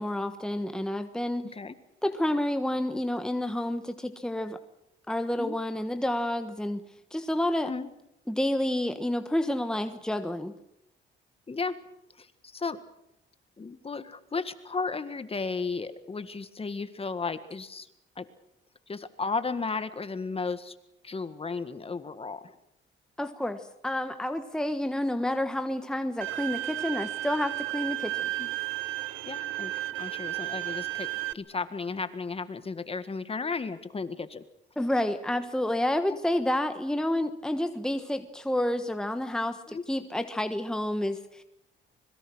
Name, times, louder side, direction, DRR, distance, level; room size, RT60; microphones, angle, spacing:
voice 1, 0.0-1.4 2.0-4.6 5.1-6.8 7.1-7.7 8.3-10.5 23.2-28.3 34.8-41.4, left 1 dB, 5° left, 8 dB, 1.3 m, -29 dB
voice 2, 1.4-1.8 5.4-5.6 7.7-7.9 11.5-11.8 12.2-12.8 13.6-17.9 18.2-18.3 18.9-20.8 21.0-22.6 28.4-28.5 29.3-29.7 30.0-34.4 36.1-36.2 39.7-39.8, left 4 dB, 30° left, 12 dB, 1.8 m, -34 dB
Bowed string instrument, 26.2-31.3, right 16 dB, 85° right, 1.1 m, -33 dB
25.5 x 22.0 x 6.4 m, 0.81 s
cardioid pair, 90°, 20 cm